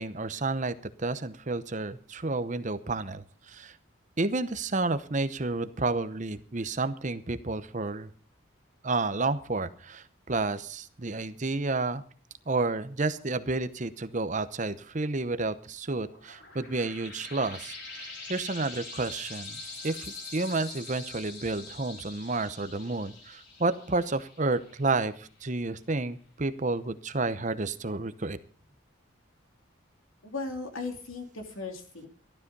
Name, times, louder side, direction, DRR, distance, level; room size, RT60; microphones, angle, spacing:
voice 1, 0.0-3.8 4.2-8.1 8.8-12.0 12.5-28.4, right 3 dB, 35° right, 11 dB, 0.8 m, -31 dB
sound 1, 16.0-25.1, left 3 dB, 55° left, 5.0 m, -44 dB
voice 2, 30.2-32.1, left 3 dB, 80° left, 3 dB, 3.1 m, -37 dB
14.5 x 12.5 x 5.4 m, 0.42 s
head